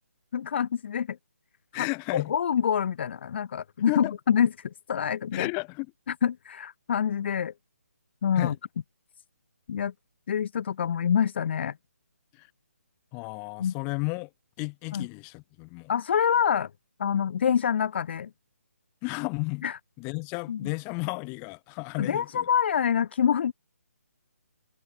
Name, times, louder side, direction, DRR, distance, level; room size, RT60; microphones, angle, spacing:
voice 1, 0.3-1.2 1.8-5.5 6.2-7.5 8.2-8.5 9.7-9.9 10.3-11.7 13.6-13.7 14.9-15.1 15.9-16.7 17.0-18.3 19.6-19.8 20.5-20.7 22.0-23.5, left 8 dB, 45° left, 1.1 m, -26 dB
voice 2, 1.7-2.3 3.9-4.1 5.3-5.9 8.3-8.6 12.4-12.5 13.1-14.3 14.6-15.9 19.0-19.6 20.0-22.4, left 36 dB, 20° left, 1.8 m, -33 dB
figure-of-eight pair, 145°, 8 cm